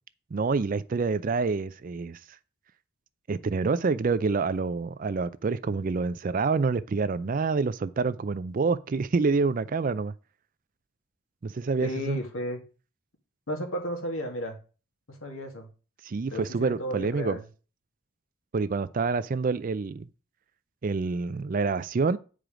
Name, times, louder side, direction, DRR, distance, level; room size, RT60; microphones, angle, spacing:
voice 1, 0.3-2.2 3.3-10.1 11.4-12.2 16.0-17.4 18.5-20.1 20.8-22.2, right 4 dB, 40° right, 0.4 m, -27 dB
voice 2, 11.8-12.6 13.5-14.6 15.1-15.7 16.3-17.4, equal, 75° left, 2.0 m, -33 dB
9.1 x 4.9 x 5.0 m
head